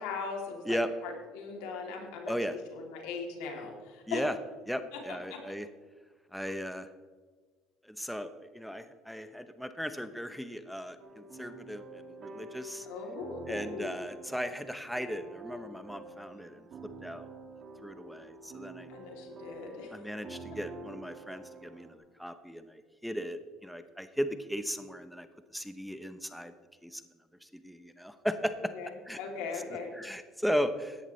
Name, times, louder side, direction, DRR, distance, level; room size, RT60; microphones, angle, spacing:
voice 1, 0.0-2.3 2.7-4.2 5.1-5.4 12.8-14.0 18.9-19.9 28.7-28.9 29.2-29.9, left 5 dB, 85° left, 1 dB, 2.8 m, -39 dB
voice 2, 2.3-2.6 4.1-4.3 4.7-5.7 6.3-6.9 7.9-12.9 13.5-16.7 17.0-17.3 17.8-18.9 19.9-25.3 25.5-26.5 26.8-27.0 27.4-28.7 29.1-29.2 30.0-31.0, equal, ahead, 9 dB, 0.8 m, -36 dB
sound 1, 11.0-21.9, right 3 dB, 45° right, 2.2 m, -48 dB
15.5 x 11.0 x 3.2 m, 1.5 s
supercardioid pair, 100°, 0 cm